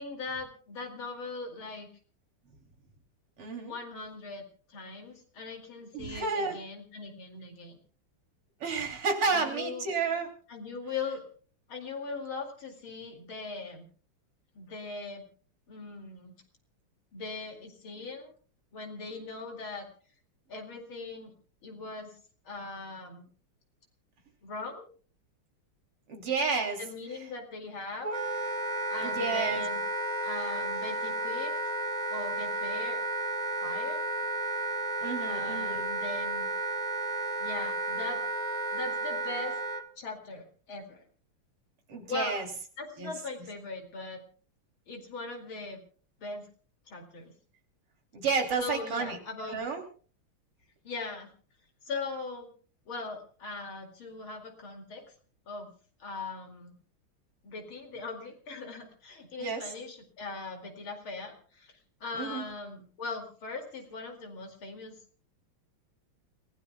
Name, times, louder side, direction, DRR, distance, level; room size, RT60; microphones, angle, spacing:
voice 1, 0.0-1.9 3.6-7.8 9.3-9.8 10.5-11.2 11.7-13.9 14.5-15.2 15.7-16.3 17.1-18.3 18.7-19.9 20.5-21.3 21.6-22.2 22.4-23.3 24.4-24.8 26.8-28.1 28.9-29.8 30.2-31.5 32.1-33.0 33.6-34.0 35.2-36.5 37.4-38.2 38.7-39.6 40.0-41.0 42.1-42.3 42.8-44.2 44.9-45.8 46.2-46.5 46.9-47.3 48.6-49.6 50.8-51.3 51.8-52.5 52.9-55.0 55.5-55.7 56.0-56.8 57.4-64.9, left 3 dB, 70° left, 2 dB, 3.2 m, -40 dB
voice 2, 3.4-3.7 5.9-6.6 8.6-10.3 26.1-26.8 29.0-29.6 35.0-35.8 41.9-42.5 43.0-43.1 48.1-49.2 49.5-49.8 59.4-59.6 62.2-62.4, right 4 dB, 80° right, 2 dB, 4.0 m, -31 dB
Wind instrument woodwind instrument, 28.0-39.8, right 2 dB, 35° right, 0.6 m, -32 dB
29.5 x 16.5 x 2.3 m, 0.41 s
omnidirectional pair, 2.4 m